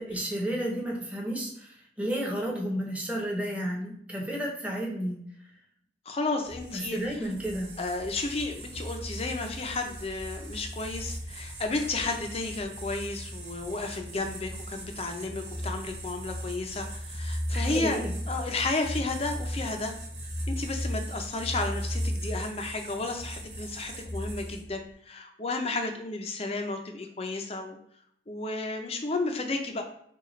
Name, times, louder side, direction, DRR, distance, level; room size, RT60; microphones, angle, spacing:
voice 1, 0.0-5.2 6.7-7.7 17.5-18.1, right 1 dB, 5° right, -2 dB, 0.8 m, -32 dB
voice 2, 6.1-7.0 7.8-18.0 18.3-19.9 20.5-27.8 28.3-29.8, left 3 dB, 30° left, 4 dB, 0.5 m, -32 dB
sound 1, 6.4-24.8, equal, 65° right, 1.9 m, -37 dB
6.4 x 2.4 x 3.1 m, 0.66 s
head